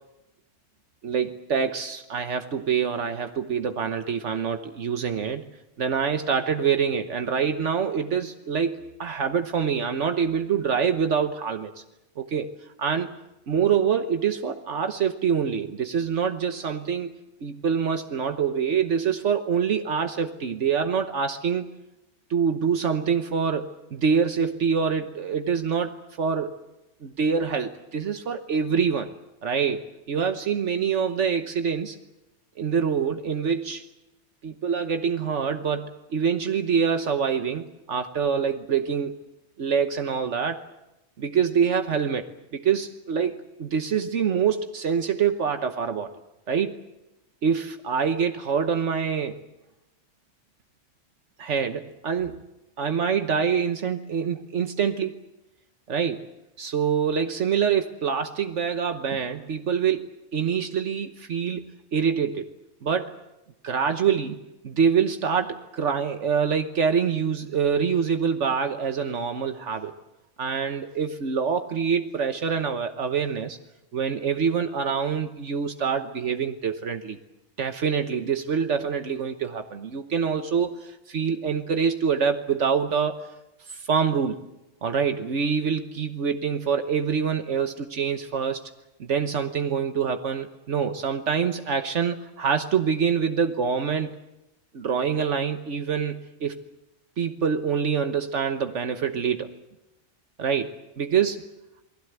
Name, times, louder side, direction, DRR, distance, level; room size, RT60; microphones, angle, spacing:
voice 1, 1.0-5.4 5.8-11.7 12.2-12.5 12.8-13.1 13.5-17.1 17.4-21.6 22.3-26.5 27.0-29.1 29.4-29.8 30.1-32.0 32.6-33.9 34.4-39.2 39.6-40.6 41.2-42.3 42.6-46.1 46.5-46.8 47.4-49.4 51.4-52.4 52.8-55.2 55.9-56.3 56.6-61.6 61.9-62.5 62.8-63.2 63.6-69.9 70.4-73.6 73.9-77.2 77.6-83.2 83.7-84.4 84.8-88.6 89.0-94.2 94.7-96.6 97.2-99.5 100.4-101.4, right 6 dB, 75° right, 7 dB, 1.4 m, -25 dB
28.5 x 20.0 x 8.1 m, 0.96 s
omnidirectional pair, 1.2 m